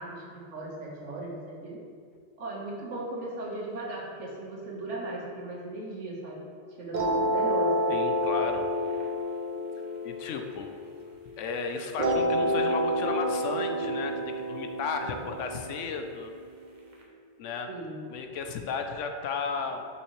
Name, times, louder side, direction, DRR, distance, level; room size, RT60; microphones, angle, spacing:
voice 1, 0.0-1.8 2.4-6.5 6.8-7.9 15.0-15.1 17.7-18.0, right 2 dB, 80° right, -4 dB, 1.6 m, -38 dB
sound 1, 6.9-11.3 12.0-16.9, equal, 45° right, 0.9 m, -29 dB
voice 2, 7.9-8.7 10.0-10.7 11.4-16.3 17.4-17.7 18.1-19.8, left 5 dB, 90° left, 5 dB, 1.0 m, -34 dB
6.4 x 5.7 x 3.1 m, 2.2 s
omnidirectional pair, 1.2 m